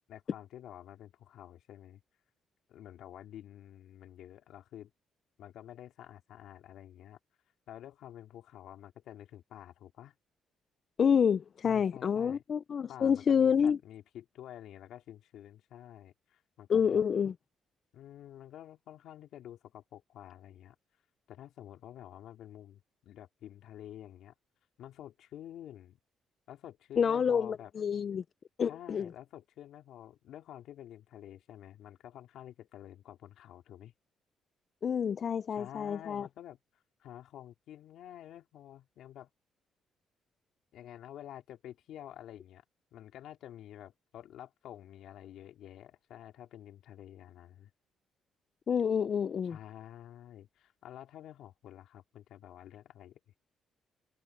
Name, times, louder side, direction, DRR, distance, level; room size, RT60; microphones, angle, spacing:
voice 1, 0.1-2.0 2.7-4.9 5.4-7.2 7.7-10.1 11.6-12.4 12.9-17.0 17.9-20.8 21.3-24.3 24.8-26.0 26.5-27.7 28.7-33.9 35.5-36.6 37.0-39.3 40.7-42.6 42.9-47.7 49.4-53.2, left 11 dB, 80° left, 3.3 m, -49 dB
voice 2, 11.0-13.8 16.7-17.3 27.0-28.2 28.6-29.1 34.8-36.3 48.7-49.6, left 7 dB, 50° left, 0.4 m, -28 dB
cardioid pair, 90°, 0 cm